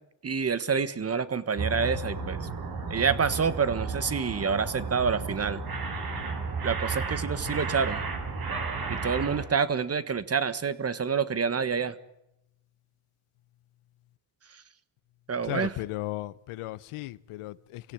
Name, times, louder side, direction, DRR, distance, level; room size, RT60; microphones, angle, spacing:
voice 1, 0.2-2.5 2.9-5.6 6.6-8.0 8.9-11.9 15.3-15.8, right 6 dB, 30° right, 1.5 m, -27 dB
sound 1, 1.6-9.4, right 4 dB, 45° right, 7.7 m, -33 dB
voice 2, 15.5-17.8, left 17 dB, 80° left, 1.0 m, -35 dB
26.5 x 17.0 x 10.0 m
cardioid pair, 115°, 50 cm